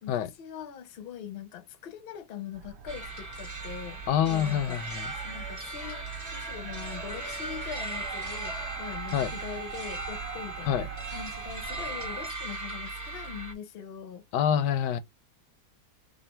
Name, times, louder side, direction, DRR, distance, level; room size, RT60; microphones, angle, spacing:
voice 1, 0.0-4.8 5.2-14.2, left 9 dB, 50° left, 0.7 m, -42 dB
sound 1, 2.5-12.3, right 6 dB, 60° right, 0.7 m, -44 dB
sound 2, 2.9-13.5, right 2 dB, 20° right, 0.5 m, -38 dB
voice 2, 4.1-5.1 9.1-9.3 10.7-10.8 14.3-15.0, left 9 dB, 85° left, 1.2 m, -26 dB
3.3 x 2.4 x 4.3 m
omnidirectional pair, 1.8 m